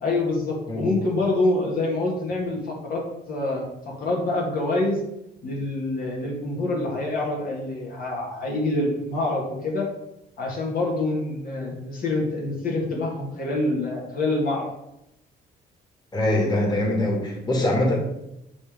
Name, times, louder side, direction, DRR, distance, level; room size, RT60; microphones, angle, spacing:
voice 1, 0.0-3.7 4.0-5.0 5.4-9.9 10.4-14.7, left 2 dB, 55° left, -2 dB, 2.0 m, -26 dB
voice 2, 16.1-17.9, left 1 dB, 25° left, -2 dB, 2.2 m, -23 dB
8.5 x 3.5 x 5.1 m, 0.86 s
cardioid pair, 125°, 18 cm